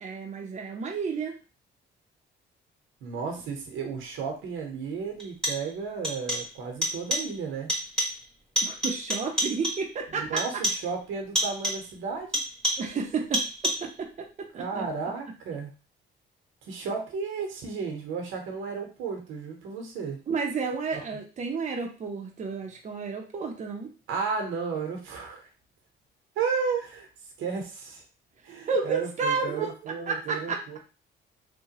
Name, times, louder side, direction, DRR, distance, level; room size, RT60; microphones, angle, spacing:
voice 1, 0.0-1.4 8.6-10.4 12.8-14.8 20.3-23.9 28.7-30.6, right 5 dB, 35° right, 1 dB, 0.7 m, -31 dB
voice 2, 3.0-7.8 10.1-12.4 14.6-15.7 16.6-20.2 20.9-21.0 24.1-25.5 26.4-27.1 27.4-28.0 28.4-30.8, right 5 dB, 90° right, 2 dB, 0.8 m, -33 dB
sound 1, 4.2-4.3 5.2-5.8 6.0-6.6 6.8-7.4 7.7-8.3 8.6-9.9 10.4-10.9 11.4-11.9 12.3-13.0 13.3-14.0, equal, 5° left, 1.4 m, -29 dB
2.9 x 2.2 x 2.8 m, 0.33 s
cardioid pair, 90°, 20 cm